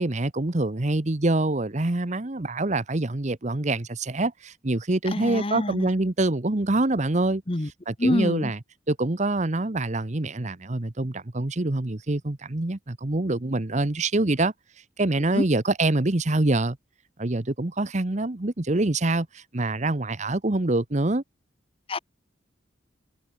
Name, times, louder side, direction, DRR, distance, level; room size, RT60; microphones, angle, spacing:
voice 1, 0.0-7.4 7.9-8.6 8.9-14.5 15.0-16.8 17.2-21.2, right 2 dB, 40° right, 1.0 m, -25 dB
voice 2, 5.1-5.9 7.5-7.7 8.0-8.5 15.3-15.4 21.9-22.0, left 1 dB, 30° left, 1.0 m, -26 dB
head